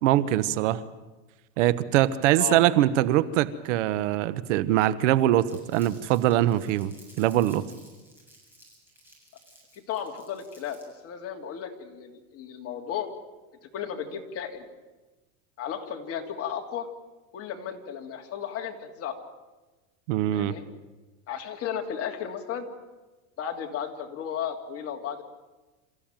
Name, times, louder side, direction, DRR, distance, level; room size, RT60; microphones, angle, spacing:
voice 1, 0.0-0.8 1.6-7.6 20.1-20.5, right 13 dB, 75° right, 15 dB, 1.3 m, -23 dB
Crumpling crinkling, 5.5-11.0, right 1 dB, 5° right, 8.0 m, -55 dB
voice 2, 9.7-10.8 11.0-13.1 13.7-14.7 15.6-16.9 17.3-19.2 20.3-20.6 21.3-22.7 23.4-25.2, left 8 dB, 40° left, 3 dB, 3.1 m, -34 dB
27.5 x 15.0 x 9.1 m, 1.2 s
supercardioid pair, 135°, 37 cm